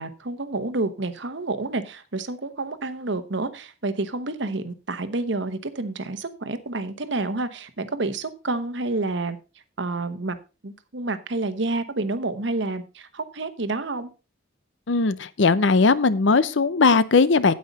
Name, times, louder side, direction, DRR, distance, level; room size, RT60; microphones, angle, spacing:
voice 1, 0.0-9.4 9.8-10.4 10.6-14.1, right 2 dB, 65° right, 11 dB, 1.0 m, -29 dB
voice 2, 14.9-17.5, left 4 dB, 70° left, 16 dB, 0.6 m, -19 dB
9.3 x 8.7 x 4.0 m, 0.30 s
head